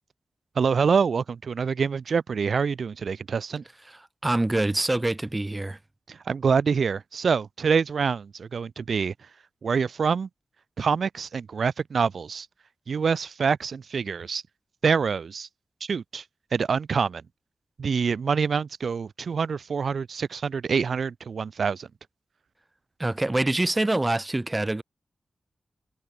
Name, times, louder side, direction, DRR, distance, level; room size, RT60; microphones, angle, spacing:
voice 1, 0.6-3.6 6.1-9.1 9.6-10.3 10.8-12.5 12.9-14.4 14.8-15.5 15.8-16.2 16.5-17.2 17.8-21.9, right 6 dB, 65° right, 4.2 m, -26 dB
voice 2, 3.9-5.8 23.0-24.8, right 2 dB, 15° right, 3.7 m, -25 dB
wide cardioid pair, 170°, 0 cm